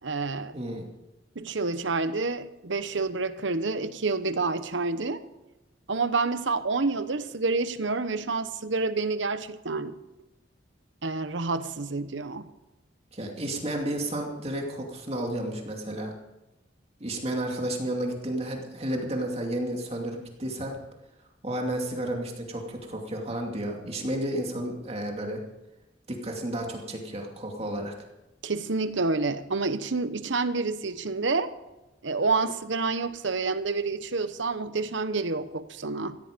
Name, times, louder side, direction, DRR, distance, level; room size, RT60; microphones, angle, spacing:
voice 1, 0.0-0.5 1.3-5.2 5.9-9.9 11.0-12.5 28.4-31.5 32.0-36.2, right 3 dB, 75° right, 12 dB, 1.0 m, -28 dB
voice 2, 0.5-0.9 13.1-16.1 17.0-20.8 21.4-25.4 26.1-27.9, right 1 dB, 35° right, 1 dB, 2.5 m, -32 dB
16.0 x 14.0 x 5.2 m, 0.98 s
head